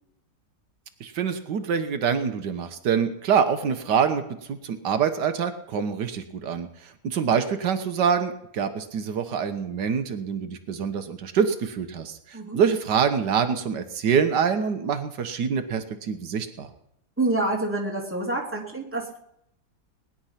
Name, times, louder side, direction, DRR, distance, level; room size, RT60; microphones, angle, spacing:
voice 1, 1.0-4.2 4.5-16.7, right 7 dB, 85° right, 8 dB, 1.8 m, -25 dB
voice 2, 17.2-19.2, right 2 dB, 5° right, -1 dB, 2.9 m, -27 dB
20.0 x 10.5 x 5.8 m, 0.75 s
omnidirectional pair, 1.8 m